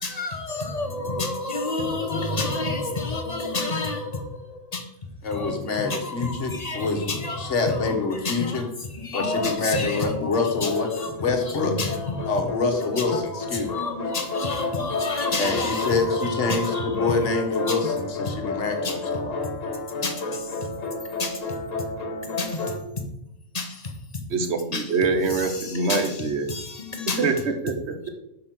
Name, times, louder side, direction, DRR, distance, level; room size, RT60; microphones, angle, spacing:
voice 1, 0.0-4.8 5.3-7.9 8.2-8.6 9.0-10.3 10.6-10.7 11.0-11.1 11.8-11.9 12.8-13.2 13.7-17.1 17.7-17.8 18.8-18.9 20.0-20.4 21.2-21.4 22.2-22.6 23.5-23.8 24.7-24.8 25.9-26.1 26.5-27.2, left 3 dB, 35° left, 5 dB, 1.0 m, -29 dB
voice 2, 5.2-8.7 9.1-10.9 11.2-11.8 12.3-13.9 15.4-19.5, left 4 dB, 65° left, 3 dB, 1.5 m, -26 dB
sound 1, 9.3-10.2 10.6-22.8, left 2 dB, 80° left, 1.5 m, -31 dB
voice 3, 24.3-26.5 27.2-28.1, right 4 dB, 60° right, 6 dB, 1.2 m, -25 dB
6.2 x 5.3 x 5.9 m, 0.85 s
omnidirectional pair, 1.3 m